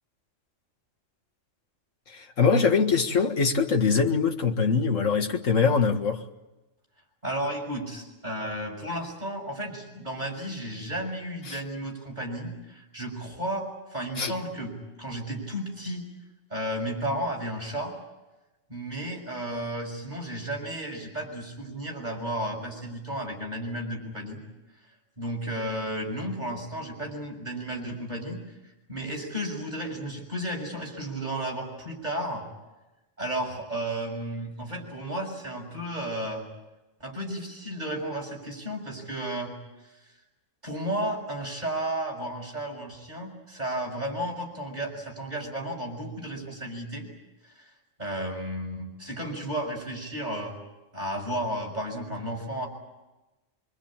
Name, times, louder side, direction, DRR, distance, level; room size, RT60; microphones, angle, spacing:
voice 1, 2.1-6.2 11.5-11.6 14.2-14.3, left 5 dB, 80° left, 2.1 m, -23 dB
voice 2, 7.2-14.7 15.0-16.1 16.5-17.9 18.7-24.4 25.2-32.4 33.2-36.4 37.0-39.5 40.6-47.1 47.4-47.7 48.0-50.6 50.9-52.7, right 1 dB, 35° right, 6.8 m, -33 dB
25.0 x 24.5 x 8.9 m
omnidirectional pair, 1.3 m